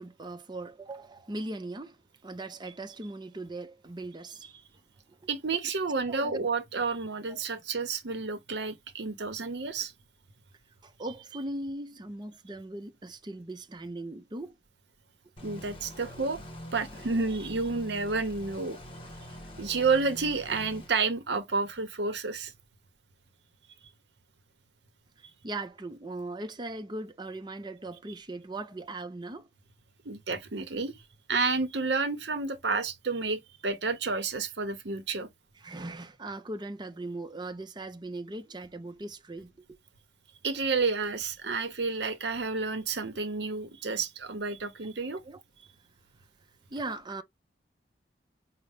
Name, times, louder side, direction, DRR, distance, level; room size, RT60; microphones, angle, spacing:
voice 1, 0.0-4.5 5.1-5.2 6.1-6.4 7.3-7.4 10.8-14.6 25.4-29.5 35.6-39.7 45.2-45.4 46.7-47.2, right 2 dB, 25° right, 0.7 m, -39 dB
voice 2, 5.3-9.9 15.4-16.4 16.7-18.8 19.6-22.5 30.0-30.9 31.3-35.3 40.4-45.2, right 4 dB, 70° right, 0.8 m, -30 dB
sound 1, 15.4-20.9, equal, 30° left, 1.3 m, -45 dB
5.4 x 2.2 x 3.3 m
head